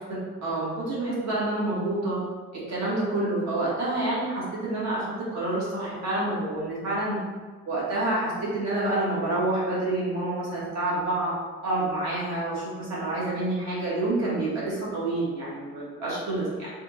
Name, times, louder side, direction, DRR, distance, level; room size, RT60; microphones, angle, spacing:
voice 1, 0.4-2.2 2.5-7.2 7.7-11.3 11.6-16.7, right 2 dB, 60° right, -7 dB, 1.5 m, -28 dB
3.5 x 3.0 x 3.6 m, 1.5 s
cardioid pair, 170°, 31 cm